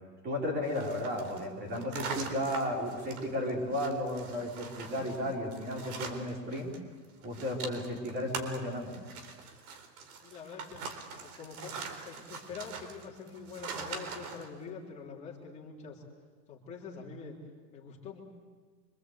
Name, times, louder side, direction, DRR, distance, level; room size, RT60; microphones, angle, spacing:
voice 1, 0.2-6.7 7.2-9.0, left 1 dB, 20° right, -1 dB, 4.5 m, -34 dB
sound 1, 0.6-6.8 7.0-14.5, right 5 dB, 60° right, 4.1 m, -43 dB
voice 2, 10.2-10.9 11.2-11.8 12.1-16.0 16.5-17.4 17.7-18.2, left 5 dB, 15° left, -2 dB, 3.5 m, -45 dB
26.5 x 25.5 x 8.2 m, 1.5 s
supercardioid pair, 175°, 50 cm